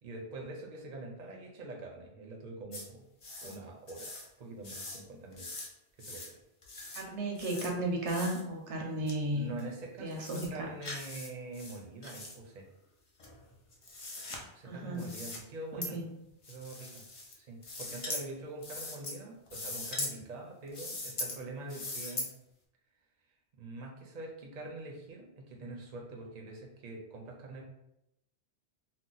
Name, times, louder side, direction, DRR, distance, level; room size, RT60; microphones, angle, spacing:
voice 1, 0.0-3.1 3.4-4.1 4.4-5.5 6.0-6.4 9.3-12.7 14.5-16.0 16.5-16.9 17.4-22.3 23.5-27.6, right 2 dB, 50° right, 0 dB, 0.6 m, -44 dB
sound 1, 2.7-2.8 3.2-3.6 3.9-4.3 4.6-5.0 5.3-5.7 6.0-6.3 6.6-7.0 7.4-7.7 8.1-8.4 9.1-9.2 9.6-9.7 10.1-10.5 10.8-11.3 11.5-12.3 13.2-14.4 15.0-15.4 15.8-15.9 16.4-17.3 17.6-18.2 18.6-19.2 19.5-20.1 20.7-21.4 21.7-22.3, left 2 dB, 40° left, 0.5 m, -41 dB
voice 2, 6.9-9.5 10.0-10.7 14.6-15.1 15.7-16.1, right 1 dB, 80° right, 0 dB, 1.0 m, -34 dB
2.7 x 2.1 x 3.8 m, 0.85 s
omnidirectional pair, 1.1 m